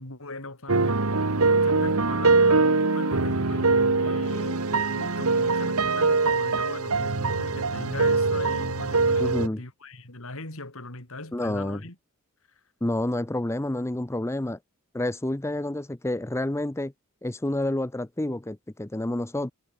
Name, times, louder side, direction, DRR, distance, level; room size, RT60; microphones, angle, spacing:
voice 1, 0.0-12.0, left 2 dB, 65° left, 4.9 m, -40 dB
sound 1, 0.7-9.5, right 3 dB, 70° right, 1.5 m, -23 dB
voice 2, 9.2-9.6 11.3-11.8 12.8-14.6 14.9-16.9 17.2-19.5, left 1 dB, 10° left, 0.7 m, -29 dB
head